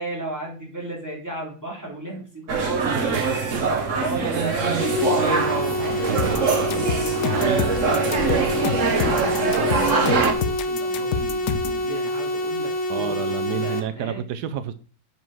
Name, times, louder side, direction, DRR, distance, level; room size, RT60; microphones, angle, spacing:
voice 1, 0.0-3.3 3.9-6.4 7.3-14.3, right 2 dB, 10° right, 3.6 m, -35 dB
sound 1, 2.5-10.3, right 4 dB, 50° right, 1.6 m, -23 dB
sound 2, 4.8-13.8, left 1 dB, 45° left, 1.5 m, -27 dB
sound 3, 6.2-11.8, left 8 dB, 80° left, 1.3 m, -28 dB
voice 2, 7.2-7.8 12.9-14.7, right 9 dB, 85° right, 1.3 m, -30 dB
8.4 x 5.5 x 6.2 m
omnidirectional pair, 1.7 m